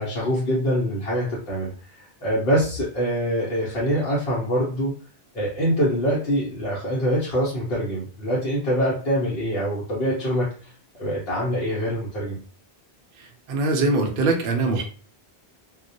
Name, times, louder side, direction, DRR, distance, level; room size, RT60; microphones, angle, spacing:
voice 1, 0.0-4.9 5.3-10.7 11.0-12.4, equal, 65° left, -6 dB, 0.9 m, -24 dB
voice 2, 13.2-14.8, right 3 dB, 60° right, 2 dB, 0.7 m, -23 dB
2.3 x 2.1 x 2.6 m, 0.41 s
omnidirectional pair, 1.1 m